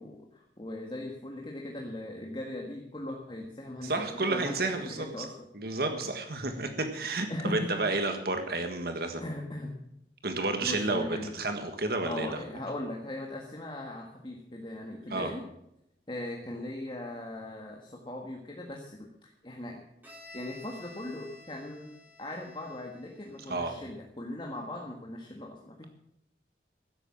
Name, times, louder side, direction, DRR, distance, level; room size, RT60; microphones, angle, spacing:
voice 1, 0.0-5.3 5.9-6.1 6.4-6.5 7.3-7.8 9.2-9.8 10.6-11.3 12.0-15.5 16.1-19.8 20.3-21.9 22.2-25.8, left 1 dB, 25° left, 0 dB, 1.7 m, -39 dB
voice 2, 3.8-5.2 5.5-9.2 10.2-12.4 15.1-15.3 23.5-23.7, right 2 dB, 60° right, 6 dB, 1.6 m, -31 dB
Bowed string instrument, 20.0-23.8, left 1 dB, 10° right, 3.9 m, -52 dB
15.5 x 8.8 x 7.4 m, 0.80 s
head